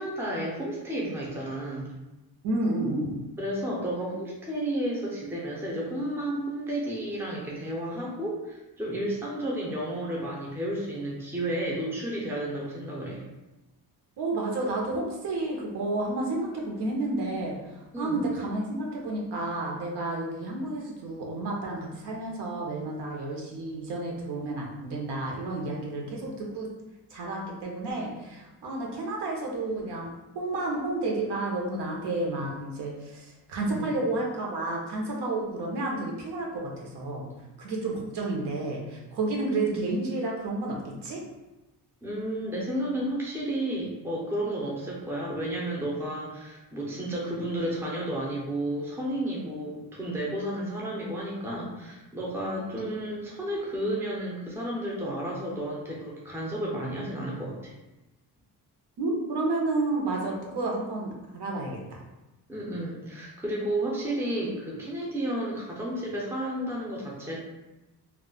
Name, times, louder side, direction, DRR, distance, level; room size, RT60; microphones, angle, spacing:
voice 1, 0.0-1.9 3.4-13.2 17.9-18.2 33.7-33.9 39.6-39.8 42.0-57.7 62.5-67.4, right 1 dB, 5° right, -3 dB, 0.5 m, -32 dB
voice 2, 2.4-3.2 14.2-26.7 27.1-30.1 30.3-37.3 37.6-41.2 52.8-52.9 59.0-62.0, right 2 dB, 75° right, -1 dB, 0.8 m, -31 dB
2.3 x 2.0 x 3.8 m, 1.0 s
wide cardioid pair, 145°, 41 cm